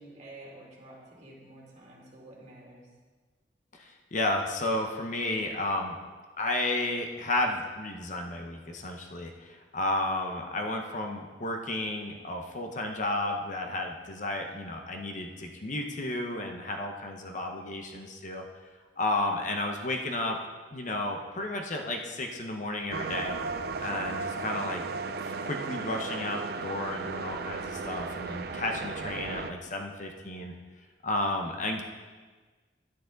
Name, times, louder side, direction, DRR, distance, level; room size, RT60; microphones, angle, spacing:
voice 1, 0.0-2.9, right 1 dB, 40° right, -4 dB, 2.4 m, -49 dB
voice 2, 3.7-6.0 6.4-18.4 19.0-20.4 20.7-23.4 23.8-24.8 25.2-30.5 31.0-31.8, left 2 dB, 45° left, 3 dB, 0.8 m, -32 dB
sound 1, 22.9-29.5, right 4 dB, 60° right, 0.5 m, -35 dB
10.5 x 9.2 x 3.9 m, 1.4 s
head